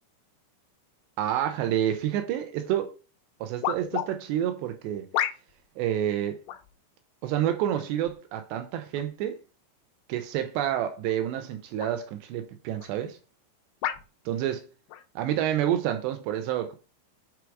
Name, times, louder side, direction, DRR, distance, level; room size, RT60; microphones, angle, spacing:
voice 1, 1.2-2.9 3.4-5.1 5.8-6.4 7.2-9.4 10.1-13.2 14.3-14.7 15.2-16.8, right 11 dB, 80° right, 2.6 m, -28 dB
sound 1, 2.7-2.8 3.6-4.1 5.1-5.7 6.5-6.7 7.7-8.1 8.9-9.1 11.0-11.2 11.8-12.0 12.8-12.9 13.8-14.1 14.9-15.1, left 12 dB, 85° left, 2.7 m, -31 dB
6.9 x 4.8 x 4.6 m
omnidirectional pair, 5.5 m